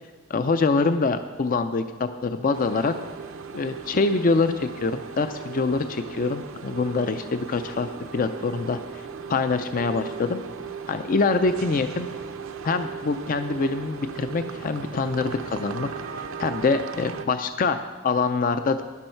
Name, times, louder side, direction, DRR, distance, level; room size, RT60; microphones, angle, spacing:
voice 1, 0.3-2.9 3.5-8.8 9.3-10.4 10.9-12.1 12.6-15.9 16.2-17.8 18.0-18.8, left 4 dB, 40° left, 9 dB, 0.4 m, -25 dB
sound 1, 2.5-17.3, right 6 dB, 70° right, 0.6 m, -37 dB
11.5 x 10.5 x 4.5 m, 1.3 s
head